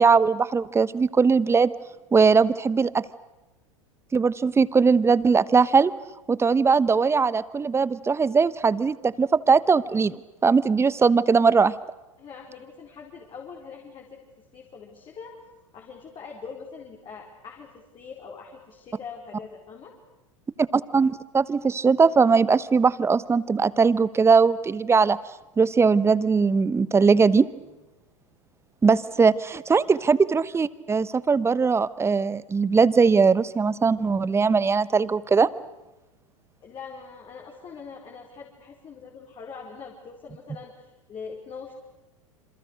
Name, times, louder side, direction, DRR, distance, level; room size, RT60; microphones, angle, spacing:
voice 1, 0.0-1.7 2.1-3.0 4.1-5.9 6.3-11.7 20.7-25.2 25.6-27.5 28.8-35.5, right 5 dB, 15° right, 18 dB, 1.1 m, -20 dB
voice 2, 12.2-14.2 14.5-15.4 15.7-19.9 28.8-29.2 36.6-41.7, left 5 dB, 30° left, 0 dB, 4.9 m, -42 dB
28.0 x 27.0 x 6.5 m, 1.0 s
figure-of-eight pair, 90°, 17 cm